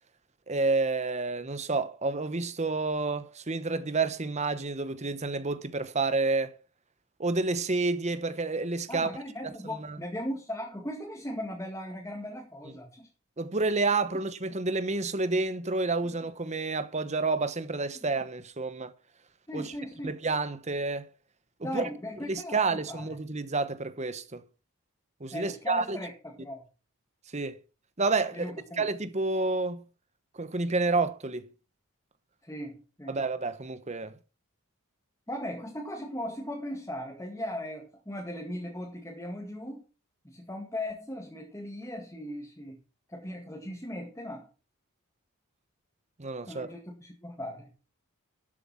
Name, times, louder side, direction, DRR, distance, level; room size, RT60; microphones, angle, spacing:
voice 1, 0.5-6.5 7.2-9.1 9.4-9.5 9.8-10.0 13.4-18.9 19.5-19.7 20.0-21.1 21.6-21.9 22.3-24.4 25.2-26.0 27.3-27.6 28.0-29.8 30.3-31.5 33.1-34.1 46.2-46.7, right 3 dB, 30° right, 1.0 m, -29 dB
voice 2, 8.9-13.1 19.5-20.1 21.6-23.2 25.3-26.6 28.3-28.9 32.4-33.2 35.3-39.8 40.2-42.8 43.1-44.5 46.5-47.7, left 1 dB, 15° left, 2.1 m, -38 dB
12.5 x 7.9 x 5.7 m
head